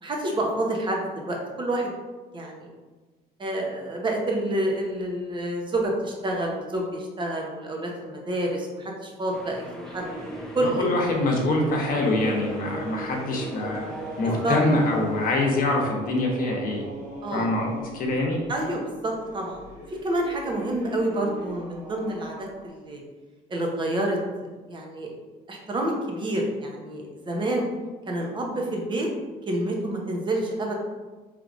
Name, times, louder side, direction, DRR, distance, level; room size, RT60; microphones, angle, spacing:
voice 1, 0.0-1.9 2.3-2.7 3.4-10.1 10.5-10.8 14.2-14.6 17.2-17.5 18.5-23.0 23.5-24.2 24.7-25.1 25.5-27.7 28.1-29.1 29.5-30.7, right 1 dB, 30° right, 0 dB, 0.9 m, -28 dB
sound 1, 9.3-15.5, left 1 dB, 5° left, 0.4 m, -42 dB
sound 2, 10.0-22.7, right 2 dB, 50° right, 1.1 m, -40 dB
voice 2, 10.6-13.9 14.2-16.8 17.3-18.4, left 2 dB, 55° left, 0 dB, 1.0 m, -24 dB
4.7 x 3.3 x 2.5 m, 1.3 s
cardioid pair, 110°, 17 cm